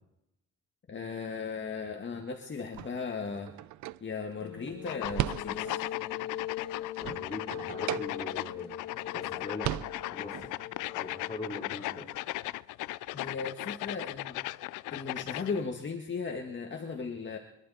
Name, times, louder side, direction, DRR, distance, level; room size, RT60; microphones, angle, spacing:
voice 1, 0.9-3.5 4.0-5.8 13.1-14.4 14.9-17.4, left 5 dB, 40° left, 2 dB, 1.9 m, -37 dB
sound 1, 2.7-6.0 6.4-8.7 9.0-9.1 9.4-10.5, right 15 dB, 70° right, 0.5 m, -38 dB
sound 2, 4.4-11.8, left 11 dB, 60° left, 1.8 m, -41 dB
sound 3, 4.8-15.6, left 18 dB, 85° left, 0.5 m, -37 dB
voice 2, 7.0-8.7 9.1-9.8 10.1-10.5 10.9-12.0, left 2 dB, 20° left, -3 dB, 3.7 m, -41 dB
25.5 x 12.0 x 4.3 m, 0.83 s
cardioid pair, 90°, 30 cm